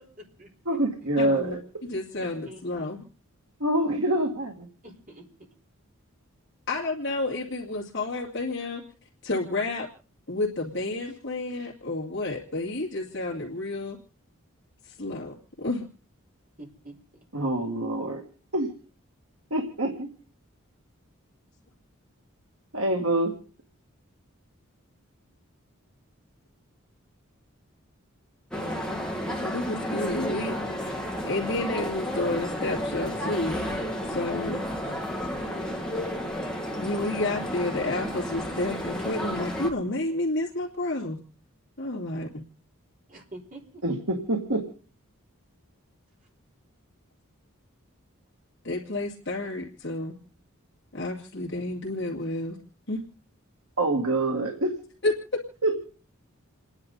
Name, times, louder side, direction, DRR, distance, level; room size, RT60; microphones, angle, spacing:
voice 1, 0.0-0.8 2.2-2.9 4.8-5.2 16.6-16.9 43.1-43.6, right 1 dB, 40° right, -1 dB, 4.4 m, -46 dB
voice 2, 0.7-1.6 3.6-4.7 17.3-18.2 18.5-18.7 19.5-20.1 22.7-23.3 43.8-44.6 53.8-54.8 55.6-55.7, right 1 dB, 75° right, 2 dB, 2.2 m, -26 dB
voice 3, 1.2-3.0 6.7-8.8 9.2-9.9 10.3-14.0 14.8-15.8 29.4-30.6 31.2-33.6 34.0-34.7 36.8-41.2 41.8-42.4 48.6-50.2 50.9-52.6 52.9-53.0 55.0-55.4, left 2 dB, 50° left, -3 dB, 2.5 m, -30 dB
sound 1, 28.5-39.7, equal, 5° left, 1.9 m, -32 dB
29.5 x 10.5 x 4.0 m, 0.41 s
head